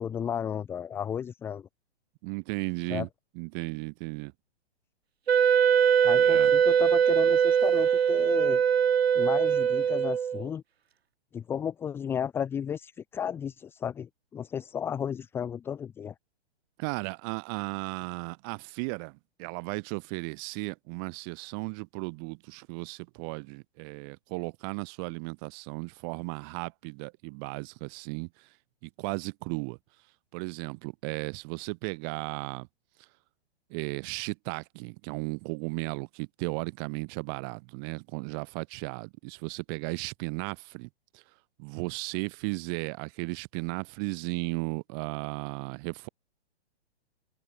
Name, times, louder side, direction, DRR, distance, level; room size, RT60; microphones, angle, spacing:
voice 1, 0.0-1.7 2.9-3.1 6.0-8.6 9.2-10.6 11.3-16.1, left 8 dB, 5° left, 1.8 m, -33 dB
voice 2, 2.2-3.1 3.3-4.3 6.1-6.5 16.8-28.3 28.8-29.8 30.3-32.7 33.7-40.9 41.1-41.2 41.6-46.1, right 36 dB, 20° right, 4.6 m, -35 dB
Wind instrument woodwind instrument, 5.3-10.5, right 8 dB, 70° right, 3.4 m, -22 dB
hypercardioid pair, 175°, 33 cm